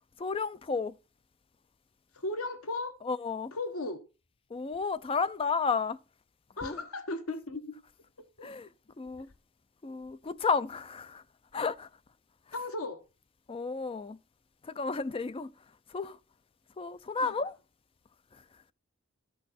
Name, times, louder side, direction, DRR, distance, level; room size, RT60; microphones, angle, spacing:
voice 1, 0.2-0.9 3.0-3.5 4.5-6.0 6.6-6.8 8.4-8.7 9.0-9.3 9.8-11.2 11.5-11.9 13.5-14.2 14.6-15.5 15.9-16.2 16.8-17.5, left 4 dB, 25° left, 0.4 m, -32 dB
voice 2, 2.1-2.9 3.5-4.0 6.6-7.8 8.4-8.5 12.5-13.0 17.2-17.3, left 2 dB, 80° left, 1.1 m, -36 dB
13.5 x 6.2 x 4.2 m
head